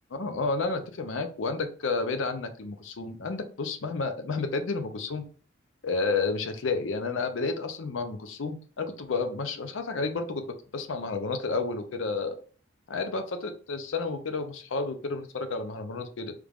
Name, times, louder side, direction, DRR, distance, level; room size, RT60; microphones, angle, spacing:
voice 1, 0.1-5.2 5.8-10.4 10.7-12.4 12.9-16.3, left 3 dB, 75° left, 7 dB, 0.5 m, -31 dB
3.4 x 3.2 x 2.4 m, 0.41 s
head